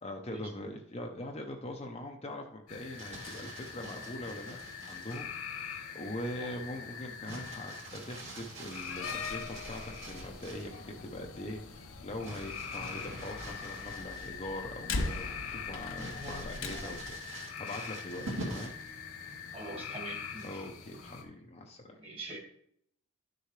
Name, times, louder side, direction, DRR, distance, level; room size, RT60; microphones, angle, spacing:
voice 1, 0.0-4.6 4.9-18.8 20.4-22.0, left 1 dB, 30° left, 2 dB, 0.7 m, -42 dB
sound 1, 2.7-21.2, left 7 dB, 85° left, 1.9 m, -44 dB
Crumpling crinkling, 2.7-5.3 7.2-10.8 12.2-14.6 15.0-15.1 15.9-18.9 20.3-20.8, right 1 dB, 60° right, 2.6 m, -45 dB
Slam, 8.8-17.2, left 3 dB, 60° left, 0.9 m, -42 dB
voice 2, 16.2-16.9 19.5-20.6 22.0-22.4, right 1 dB, 25° right, 1 dB, 1.9 m, -44 dB
12.0 x 6.6 x 3.2 m, 0.70 s
head